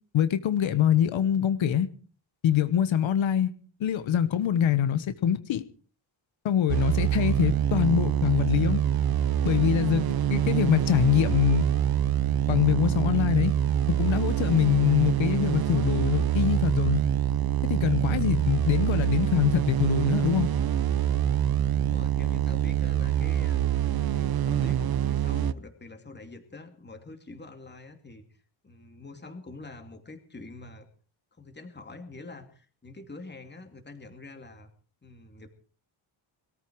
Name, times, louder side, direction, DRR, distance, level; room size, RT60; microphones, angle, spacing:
voice 1, 0.1-1.9 2.4-3.5 3.8-5.6 6.4-8.8 9.4-11.7 12.5-13.5 14.0-17.0 17.6-20.5, left 10 dB, 85° left, 1.3 m, -24 dB
sound 1, 6.7-25.5, right 10 dB, 50° right, 0.9 m, -25 dB
voice 2, 21.8-23.6 24.1-30.9 31.4-34.7 35.0-35.5, left 3 dB, 20° left, 2.7 m, -45 dB
21.5 x 14.0 x 4.7 m
wide cardioid pair, 135°, 46 cm